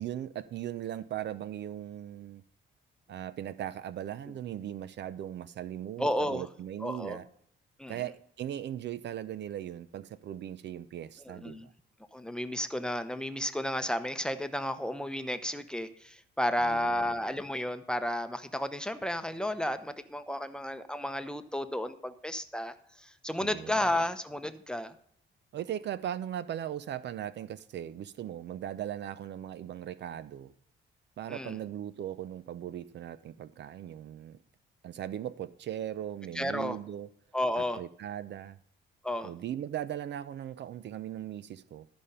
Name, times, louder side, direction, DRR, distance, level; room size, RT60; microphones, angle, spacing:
voice 1, 0.0-2.4 3.1-7.3 7.9-11.7 16.6-17.2 23.4-23.9 25.5-30.5 31.2-34.4 34.8-37.1 37.6-38.6 39.2-41.9, right 11 dB, 65° right, 0.6 m, -38 dB
voice 2, 6.0-6.5 6.8-7.2 7.8-8.0 11.2-11.7 12.1-24.9 31.3-31.6 36.3-36.8 37.3-37.8 39.0-39.3, left 1 dB, 5° left, 0.8 m, -32 dB
13.0 x 5.2 x 5.6 m
cardioid pair, 90°, 20 cm